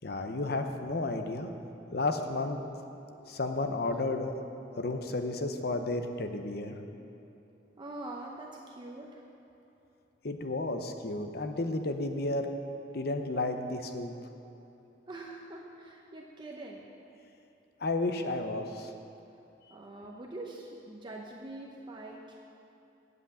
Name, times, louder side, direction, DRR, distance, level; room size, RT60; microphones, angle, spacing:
voice 1, 0.0-1.5 1.9-2.6 3.2-4.3 4.7-6.8 10.2-12.5 12.9-14.1 17.8-18.9, left 2 dB, 55° left, 6 dB, 0.8 m, -32 dB
voice 2, 7.8-9.3 15.1-16.9 19.7-22.3, right 2 dB, 25° right, -1 dB, 0.7 m, -44 dB
8.0 x 8.0 x 8.3 m, 2.9 s
head